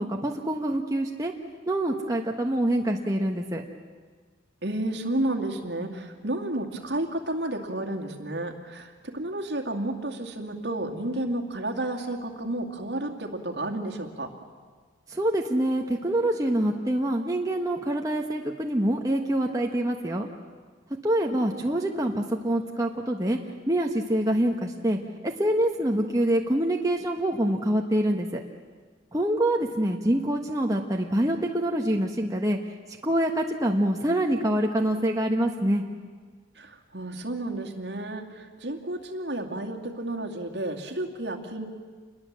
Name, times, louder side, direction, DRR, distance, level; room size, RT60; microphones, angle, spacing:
voice 1, 0.0-1.3 1.7-3.6 15.1-20.3 21.0-23.4 23.7-28.4 29.1-32.6 33.0-35.8, right 1 dB, 15° right, 1 dB, 1.2 m, -25 dB
voice 2, 4.6-14.3 36.6-41.7, right 1 dB, 60° right, 4 dB, 2.4 m, -31 dB
28.0 x 21.5 x 7.5 m, 1.5 s
head